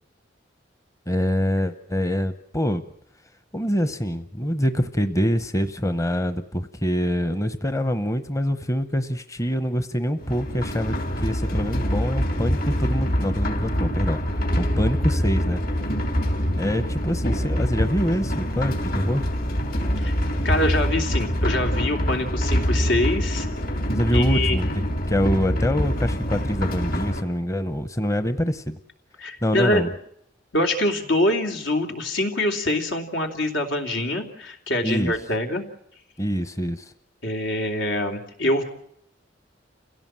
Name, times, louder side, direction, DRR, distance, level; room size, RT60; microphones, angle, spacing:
voice 1, 1.1-2.8 3.5-14.2 14.6-15.6 16.6-19.2 23.9-24.7 25.1-28.8 29.4-29.9 34.8-35.1 36.2-36.9, equal, 15° left, 10 dB, 0.8 m, -25 dB
sound 1, 10.2-27.2, equal, 55° left, 3.6 m, -25 dB
voice 2, 20.4-23.5 24.1-24.6 29.2-29.8 30.5-35.6 37.2-38.6, left 1 dB, 85° left, 3 dB, 3.0 m, -24 dB
29.5 x 16.5 x 7.5 m, 0.73 s
head